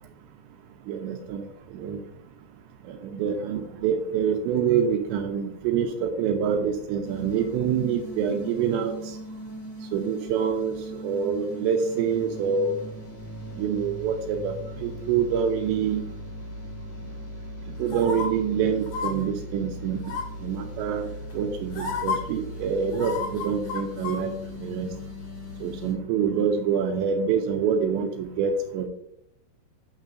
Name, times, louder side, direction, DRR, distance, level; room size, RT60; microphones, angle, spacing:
voice 1, 0.9-1.5 1.7-2.0 2.9-9.2 9.9-12.8 13.6-16.0 17.8-20.0 20.4-21.1 21.3-24.3 24.6-24.9 25.6-28.9, right 7 dB, 85° right, 5 dB, 2.6 m, -26 dB
sound 1, 7.0-25.9, left 1 dB, 70° left, 4.8 m, -39 dB
sound 2, 17.9-18.3 18.9-19.1 20.0-20.4 21.3-21.4 21.7-22.2 22.9-24.2 24.5-24.6, left 5 dB, 45° left, 2.5 m, -30 dB
9.4 x 7.3 x 2.5 m, 0.77 s
omnidirectional pair, 5.6 m